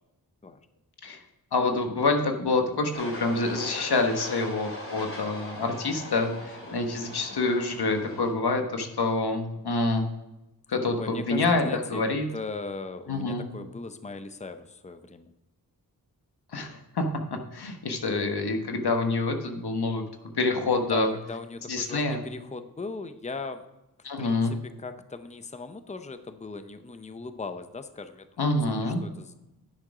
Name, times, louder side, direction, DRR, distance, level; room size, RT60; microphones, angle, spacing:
voice 1, 1.5-10.0 10.7-12.2 13.1-13.5 16.5-17.0 17.3-20.0 20.3-21.1 21.7-22.2 24.0-24.5 28.4-29.0, left 3 dB, 90° left, 5 dB, 1.2 m, -27 dB
sound 1, 2.9-8.3, left 1 dB, 35° left, 2.6 m, -40 dB
voice 2, 11.0-15.3 20.8-23.6 24.0-28.3 28.8-29.3, left 3 dB, 20° left, 9 dB, 0.6 m, -38 dB
10.5 x 6.3 x 4.9 m, 0.97 s
wide cardioid pair, 75°, 38 cm